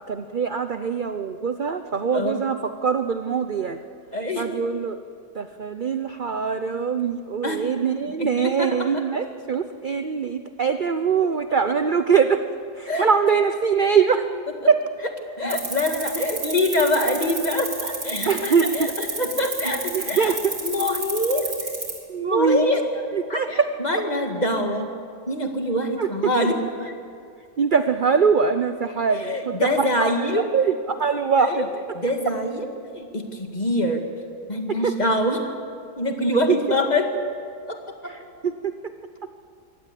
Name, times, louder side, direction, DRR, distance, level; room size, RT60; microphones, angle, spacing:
voice 1, 0.0-3.8 4.4-5.0 5.3-12.4 12.8-14.3 14.7-14.8 18.2-18.9 19.9-20.5 22.1-22.7 23.1-23.7 26.0-26.1 27.6-29.6 30.0-30.1 30.5-31.7 34.8-34.9 38.0-38.7, right 6 dB, 45° right, 9 dB, 0.7 m, -23 dB
voice 2, 2.1-2.4 4.1-4.5 7.4-7.6 8.0-8.8 12.9-13.1 15.4-20.4 20.6-21.4 22.2-22.8 23.3-24.9 25.3-26.9 29.1-30.5 31.4-31.7 32.0-34.0 34.5-35.5 36.0-37.2 37.7-37.8 38.0-38.1, left 1 dB, 25° left, 4 dB, 2.1 m, -24 dB
sound 1, 15.5-22.0, right 3 dB, 80° right, 4.3 m, -29 dB
23.5 x 17.5 x 8.4 m, 2.3 s
omnidirectional pair, 1.7 m